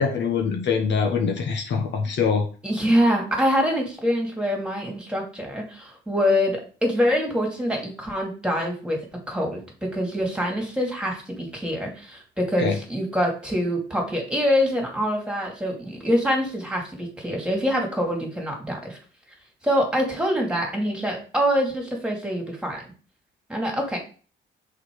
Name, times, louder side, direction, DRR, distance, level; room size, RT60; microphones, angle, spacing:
voice 1, 0.0-2.5 12.6-12.8, left 5 dB, 65° left, 3 dB, 1.4 m, -23 dB
voice 2, 2.6-9.0 9.3-19.0 19.6-22.8 23.5-24.0, equal, 5° right, 0 dB, 2.5 m, -25 dB
5.9 x 4.3 x 4.8 m, 0.38 s
cardioid pair, 90°, 20 cm